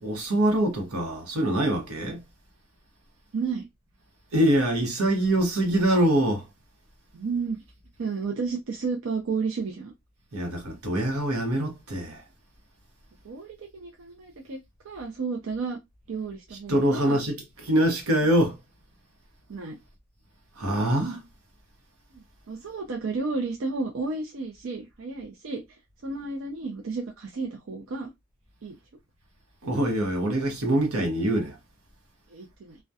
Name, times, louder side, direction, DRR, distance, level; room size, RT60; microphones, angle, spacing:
voice 1, 0.0-2.2 4.3-6.4 10.3-12.2 16.7-17.4 17.6-18.6 20.6-21.2 29.6-31.6, right 1 dB, 85° right, 0.8 m, -24 dB
voice 2, 3.3-3.7 7.1-7.6 8.0-9.9 13.2-14.6 14.8-15.8 16.1-17.2 19.5-19.8 22.5-25.6 26.0-28.1 28.6-28.8 32.3-32.8, right 4 dB, 65° right, 0.4 m, -32 dB
2.3 x 2.1 x 2.6 m
head